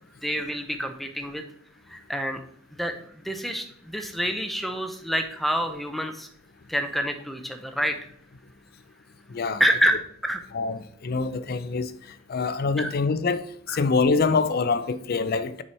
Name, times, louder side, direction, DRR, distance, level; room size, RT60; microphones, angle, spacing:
voice 1, 0.2-1.4 1.9-2.4 2.7-2.9 3.2-6.3 6.7-8.0 9.6-10.4 12.8-12.9 13.7-13.8, equal, ahead, 0.6 m, -27 dB
voice 2, 9.3-9.6 10.5-15.6, left 4 dB, 45° left, 0.5 m, -25 dB
6.9 x 4.9 x 4.3 m
head